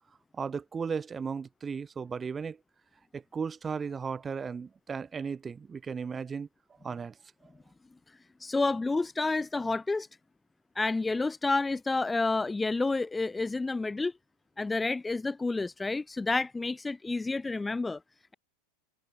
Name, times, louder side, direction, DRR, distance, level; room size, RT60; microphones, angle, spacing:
voice 1, 0.3-2.6 3.1-6.5 6.8-7.2, right 6 dB, 15° right, 1.5 m, -35 dB
voice 2, 8.4-10.1 10.7-14.1 14.6-18.0, left 3 dB, 10° left, 1.1 m, -29 dB
supercardioid pair, 145°, 0 cm